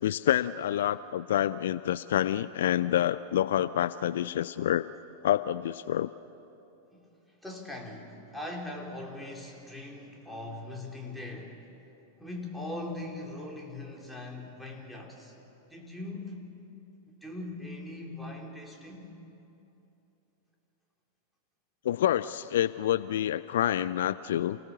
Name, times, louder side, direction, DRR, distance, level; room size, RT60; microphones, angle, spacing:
voice 1, 0.0-4.9 5.2-6.1 21.8-24.6, left 11 dB, 60° left, 16 dB, 0.4 m, -27 dB
voice 2, 7.4-11.6 12.2-15.3 15.7-16.4 17.2-19.2, left 2 dB, ahead, -1 dB, 4.0 m, -40 dB
28.5 x 18.0 x 7.0 m, 2.9 s
figure-of-eight pair, 90°, 0 cm